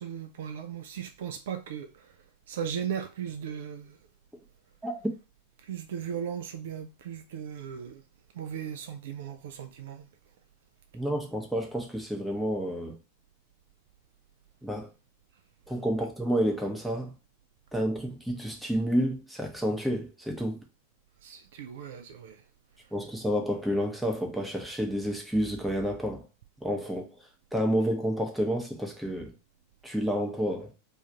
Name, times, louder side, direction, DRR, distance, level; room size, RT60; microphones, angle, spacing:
voice 1, 0.0-1.9 2.5-4.0 5.7-8.0 8.4-10.0 21.2-22.4, right 8 dB, 55° right, 0.3 m, -37 dB
voice 2, 10.9-13.0 14.6-14.9 15.7-17.1 17.7-20.6 22.9-26.3 26.6-27.1 27.5-29.3 29.8-30.7, equal, ahead, 0.7 m, -29 dB
2.4 x 2.4 x 4.0 m
figure-of-eight pair, 90°, 0 cm